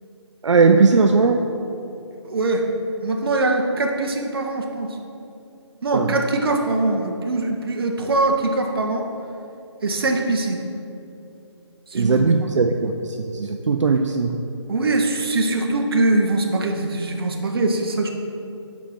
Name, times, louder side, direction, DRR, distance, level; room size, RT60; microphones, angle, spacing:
voice 1, 0.4-1.4 5.9-6.2 11.9-14.4, right 4 dB, 80° right, 5 dB, 0.4 m, -18 dB
voice 2, 2.2-2.6 3.0-4.9 5.8-9.1 9.8-10.6 11.9-12.1 14.7-18.1, right 2 dB, 50° right, 3 dB, 0.8 m, -22 dB
5.3 x 5.1 x 5.6 m, 2.7 s
figure-of-eight pair, 165°, 15 cm